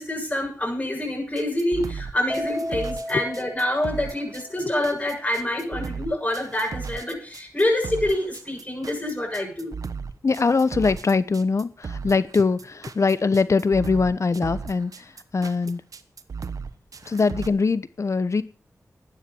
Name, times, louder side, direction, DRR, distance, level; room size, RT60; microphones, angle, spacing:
voice 1, 0.0-9.7, left 1 dB, 20° left, 0 dB, 7.0 m, -26 dB
sound 1, 1.4-17.5, right 5 dB, 70° right, 1.1 m, -35 dB
Keyboard (musical), 2.3-4.8, equal, 5° right, 1.2 m, -34 dB
voice 2, 10.2-15.8 17.1-18.4, left 4 dB, 55° left, 15 dB, 1.0 m, -22 dB
12.5 x 9.3 x 6.9 m, 0.40 s
cardioid pair, 55°, 6 cm